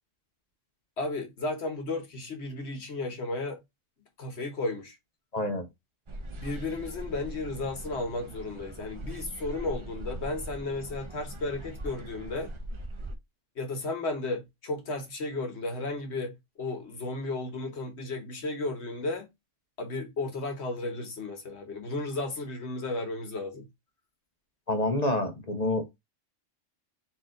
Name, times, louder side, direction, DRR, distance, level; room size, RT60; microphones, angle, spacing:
voice 1, 1.0-3.6 4.2-5.0 6.3-12.5 13.6-19.3 19.8-23.6, left 2 dB, 60° left, 1.4 m, -34 dB
voice 2, 5.3-5.7 24.7-25.8, left 1 dB, 40° left, 0.8 m, -27 dB
sound 1, 6.1-13.2, right 1 dB, 35° right, 0.5 m, -41 dB
4.5 x 3.0 x 3.7 m
omnidirectional pair, 1.3 m